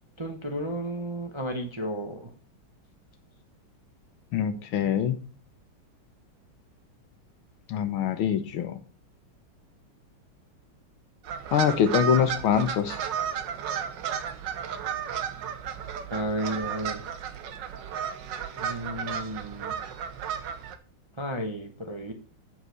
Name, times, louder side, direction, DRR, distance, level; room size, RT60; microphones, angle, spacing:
voice 1, 0.2-2.3 16.1-17.0 18.6-19.7 21.2-22.1, right 1 dB, 20° right, 4 dB, 0.8 m, -33 dB
voice 2, 4.3-5.2 7.7-8.8 11.5-13.0, left 8 dB, 75° left, 10 dB, 1.8 m, -24 dB
sound 1, 11.2-20.8, right 8 dB, 60° right, 1.5 m, -33 dB
8.2 x 7.0 x 6.4 m, 0.39 s
omnidirectional pair, 2.4 m